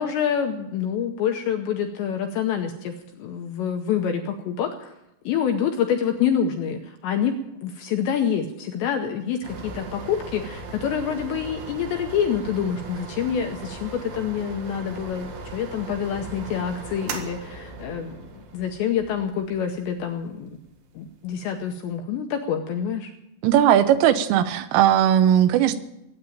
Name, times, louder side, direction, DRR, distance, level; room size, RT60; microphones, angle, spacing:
voice 1, 0.0-4.9 5.3-7.3 7.6-20.5 21.0-23.1, left 8 dB, 80° left, 5 dB, 2.7 m, -27 dB
sound 1, 9.4-21.9, right 3 dB, 70° right, 4.0 m, -38 dB
voice 2, 23.4-25.8, right 10 dB, 85° right, 10 dB, 3.5 m, -18 dB
18.5 x 8.9 x 8.6 m, 0.87 s
omnidirectional pair, 5.8 m